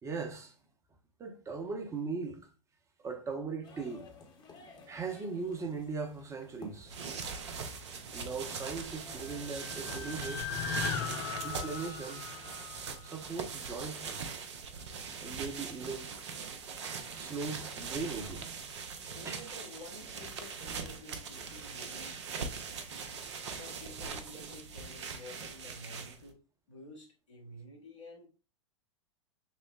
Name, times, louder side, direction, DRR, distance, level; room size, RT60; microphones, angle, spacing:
voice 1, 0.0-0.5 1.2-2.5 3.0-4.1 4.9-7.0 8.1-10.5 11.4-12.3 13.0-14.2 15.2-16.1 17.1-18.5 19.2-19.5, right 4 dB, 20° right, 0.8 m, -39 dB
sound 1, 3.6-11.2, left 2 dB, 25° left, 1.0 m, -55 dB
sound 2, 6.7-26.3, right 5 dB, 65° right, 0.7 m, -41 dB
sound 3, 9.0-13.3, left 6 dB, 50° left, 0.6 m, -38 dB
voice 2, 19.1-22.7 23.5-26.4 26.7-28.3, left 1 dB, 80° left, 1.4 m, -51 dB
6.1 x 2.0 x 2.4 m
figure-of-eight pair, 95°, 16 cm